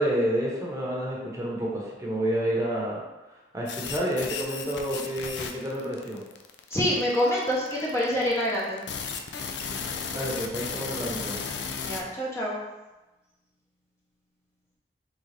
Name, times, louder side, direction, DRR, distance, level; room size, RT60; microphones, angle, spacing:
voice 1, 0.0-3.0 3.5-6.2 10.1-11.4, right 1 dB, 20° right, -4 dB, 0.8 m, -29 dB
sound 1, 3.7-12.0, left 6 dB, 85° left, 0.4 m, -34 dB
voice 2, 6.7-8.8 11.8-12.6, equal, 15° left, -5 dB, 0.6 m, -26 dB
3.9 x 3.6 x 3.3 m, 1.1 s
head